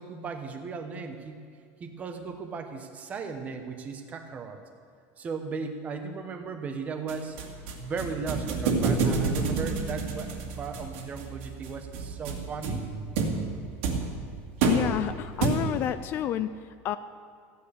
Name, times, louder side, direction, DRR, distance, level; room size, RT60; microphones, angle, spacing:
voice 1, 0.0-1.4 1.8-4.6 5.2-7.4 7.8-12.9, right 5 dB, 20° right, 6 dB, 1.1 m, -36 dB
sound 1, 7.1-16.0, right 4 dB, 75° right, 2.3 m, -30 dB
voice 2, 14.6-16.5 16.8-17.0, left 11 dB, 35° left, 12 dB, 0.3 m, -29 dB
15.0 x 10.0 x 6.6 m, 2.3 s
cardioid pair, 170°, 7 cm